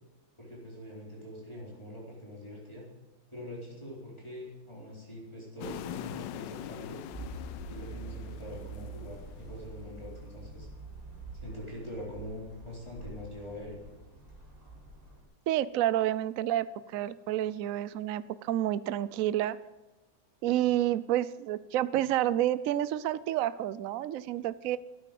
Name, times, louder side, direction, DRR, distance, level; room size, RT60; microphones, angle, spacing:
voice 1, 0.4-2.9 3.3-7.0 7.7-10.7 11.3-13.8, equal, 15° left, -5 dB, 4.2 m, -43 dB
sound 1, 5.6-9.9, left 12 dB, 75° left, 1.2 m, -43 dB
sound 2, 7.1-15.2, right 2 dB, 20° right, 4.2 m, -45 dB
voice 2, 15.5-19.6 20.4-24.8, right 13 dB, 75° right, 16 dB, 0.8 m, -29 dB
13.0 x 9.7 x 7.7 m, 1.1 s
omnidirectional pair, 2.1 m